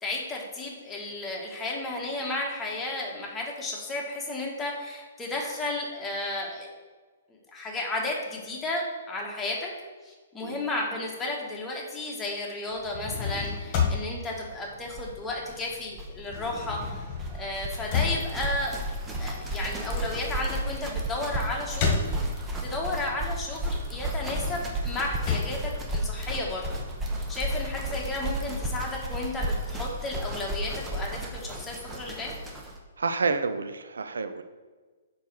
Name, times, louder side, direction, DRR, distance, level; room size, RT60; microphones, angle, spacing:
voice 1, 0.0-6.7 7.3-9.7 10.0-17.0 17.3-18.8 19.2-21.9 22.2-22.3 22.6-26.6 27.0-32.3, left 2 dB, 10° left, -2 dB, 1.5 m, -33 dB
sound 1, 12.7-15.6 15.8-22.7 23.1-26.7, left 5 dB, 35° left, 1.5 m, -32 dB
sound 2, 14.3-14.4 14.6-14.7 14.9-32.8, right 1 dB, 15° right, 1.0 m, -33 dB
sound 3, 16.3-32.3, right 1 dB, 30° right, 1.6 m, -51 dB
voice 2, 33.0-34.4, right 4 dB, 75° right, 10 dB, 0.5 m, -29 dB
4.6 x 4.4 x 5.6 m, 1.4 s
figure-of-eight pair, 125°, 0 cm